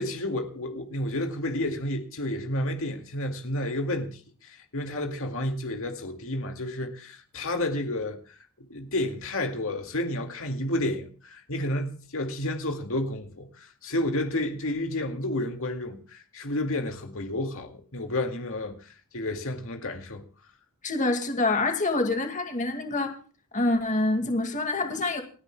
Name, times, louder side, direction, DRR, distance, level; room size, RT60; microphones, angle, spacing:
voice 1, 0.0-20.2, left 1 dB, 65° left, 2.2 m, -31 dB
voice 2, 20.8-23.1 23.5-25.2, left 2 dB, 35° left, 2.1 m, -26 dB
29.5 x 10.0 x 2.2 m
head